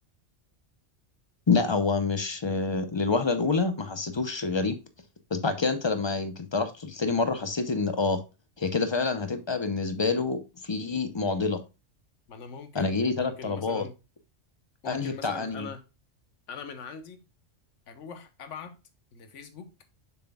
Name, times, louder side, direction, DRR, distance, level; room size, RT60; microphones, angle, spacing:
voice 1, 1.5-4.8 5.3-8.2 8.6-11.6 12.7-13.9 14.9-15.7, left 4 dB, 30° left, 0.5 m, -27 dB
voice 2, 12.3-13.9 14.8-15.8 16.5-17.2 17.9-18.8 19.1-19.7, left 5 dB, 90° left, 1.2 m, -42 dB
6.9 x 6.1 x 2.2 m
omnidirectional pair, 1.2 m